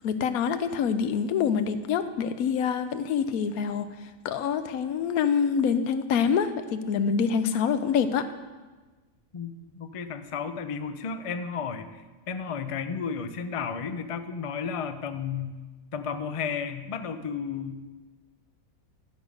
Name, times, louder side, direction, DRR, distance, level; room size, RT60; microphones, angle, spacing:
voice 1, 0.0-3.9 4.2-8.3, left 7 dB, 85° left, 11 dB, 1.1 m, -26 dB
voice 2, 9.3-15.6 15.9-17.8, left 6 dB, 60° left, 9 dB, 0.3 m, -33 dB
12.0 x 5.2 x 6.4 m, 1.3 s
omnidirectional pair, 1.5 m